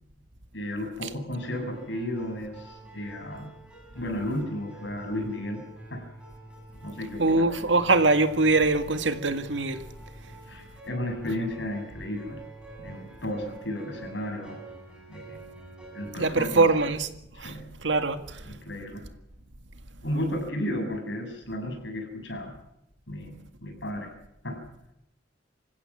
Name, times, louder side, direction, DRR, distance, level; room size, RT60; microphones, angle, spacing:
voice 1, 0.5-3.6 3.9-6.0 6.8-7.6 10.5-12.4 12.8-14.6 15.1-15.4 15.9-16.6 17.3-17.7 18.4-19.1 20.0-22.5 23.1-24.1 24.4-24.6, left 1 dB, 75° left, 7.5 m, -34 dB
sound 1, 1.3-16.8, right 2 dB, 5° right, 7.4 m, -47 dB
voice 2, 7.2-9.8 16.2-17.1 17.4-17.5 17.8-18.4, right 3 dB, 85° right, 2.0 m, -23 dB
27.0 x 16.0 x 7.5 m
head